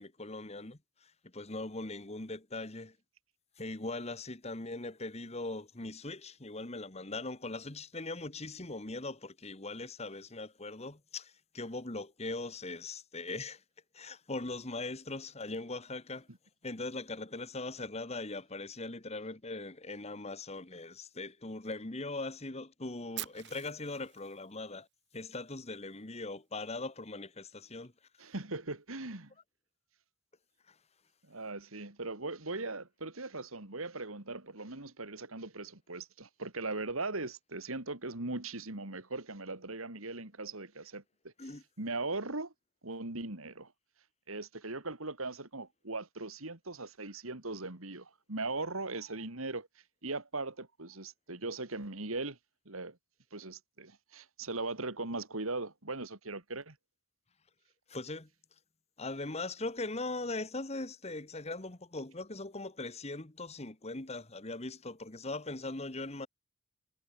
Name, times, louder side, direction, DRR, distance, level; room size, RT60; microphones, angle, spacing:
voice 1, 0.0-3.0 3.6-13.6 13.9-16.3 16.6-24.9 25.1-27.9 30.7-30.8 41.4-41.6 57.9-58.3 59.0-66.3, left 2 dB, 30° left, 1.6 m, -40 dB
Fire, 23.2-25.2, right 15 dB, 55° right, 1.6 m, -45 dB
voice 2, 28.2-29.3 31.2-41.3 41.8-42.5 42.8-43.7 44.3-49.7 50.0-52.4 52.6-53.0 53.3-56.8, right 3 dB, 75° right, 3.0 m, -39 dB
head